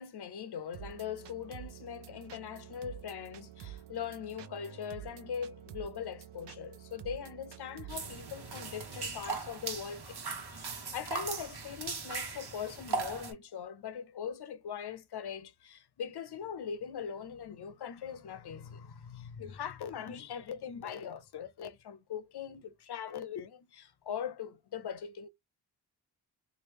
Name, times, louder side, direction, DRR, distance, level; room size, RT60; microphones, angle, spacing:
voice 1, 0.0-25.3, left 8 dB, 70° left, 0.7 m, -41 dB
sound 1, 0.7-9.1, right 11 dB, 90° right, 0.5 m, -49 dB
sound 2, 7.9-13.3, right 4 dB, 70° right, 1.1 m, -39 dB
3.0 x 2.5 x 3.3 m
wide cardioid pair, 120°, 41 cm